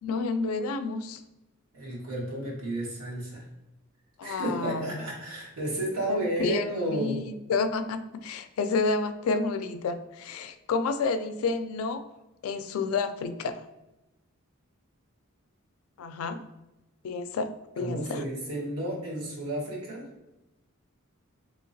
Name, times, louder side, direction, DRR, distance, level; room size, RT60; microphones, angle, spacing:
voice 1, 0.0-1.2 4.2-4.9 6.1-12.0 12.4-13.6 16.0-16.4 17.0-17.5 17.8-18.2, left 4 dB, 75° left, 9 dB, 0.3 m, -30 dB
voice 2, 1.7-3.4 4.2-7.2 17.8-20.0, right 1 dB, 90° right, -4 dB, 1.3 m, -32 dB
3.7 x 2.9 x 2.6 m, 0.99 s
head